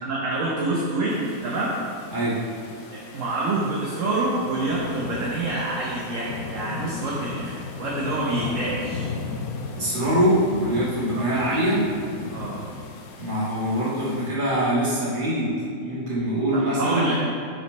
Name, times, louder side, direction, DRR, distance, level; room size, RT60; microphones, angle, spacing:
voice 1, 0.0-1.7 2.9-9.1 11.1-11.2 12.3-12.6 16.5-17.1, right 2 dB, 50° right, -5 dB, 1.1 m, -27 dB
sound 1, 1.1-14.3, left 4 dB, 65° left, 1.1 m, -36 dB
voice 2, 9.8-11.8 13.2-15.6 15.8-17.1, equal, 30° right, -7 dB, 1.8 m, -23 dB
6.4 x 6.0 x 4.4 m, 2.5 s
omnidirectional pair, 1.9 m